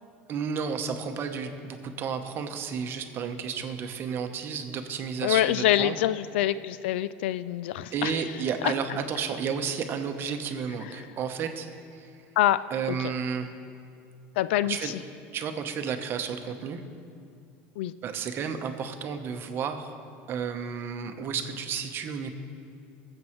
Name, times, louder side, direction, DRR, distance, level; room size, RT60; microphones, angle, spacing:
voice 1, 0.3-5.9 7.9-11.7 12.0-12.1 12.7-13.5 14.6-14.9 15.3-16.8 18.0-20.0 20.3-22.3, right 6 dB, 40° right, 6 dB, 1.0 m, -32 dB
voice 2, 5.2-8.2 8.6-8.7 12.4-12.6 12.9-13.0 14.4-14.9 17.8-17.9, left 13 dB, 85° left, 15 dB, 0.3 m, -25 dB
21.5 x 7.7 x 3.2 m, 2.4 s
supercardioid pair, 125°, 6 cm